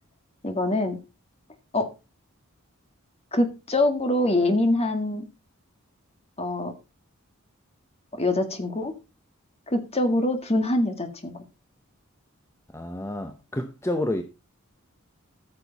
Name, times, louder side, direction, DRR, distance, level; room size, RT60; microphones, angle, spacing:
voice 1, 0.4-1.0 1.7-1.9 3.3-5.3 6.4-6.7 8.1-9.0 9.7-11.5, left 1 dB, 30° left, 1.8 m, -24 dB
voice 2, 12.7-14.2, left 1 dB, 15° left, 0.8 m, -29 dB
14.0 x 6.7 x 4.0 m
head